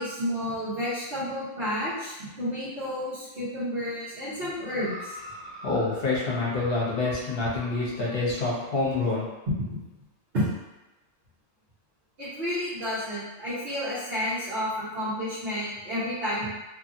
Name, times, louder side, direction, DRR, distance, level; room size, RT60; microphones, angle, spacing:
voice 1, 0.0-5.2 9.7-9.8 10.3-10.4 12.2-16.5, equal, 55° right, -13 dB, 1.2 m, -31 dB
sound 1, 4.6-8.2 9.0-9.1, equal, 80° right, 1.2 m, -44 dB
voice 2, 5.6-9.3, left 3 dB, 55° left, -6 dB, 0.9 m, -27 dB
2.7 x 2.6 x 2.6 m, 1.0 s
omnidirectional pair, 1.3 m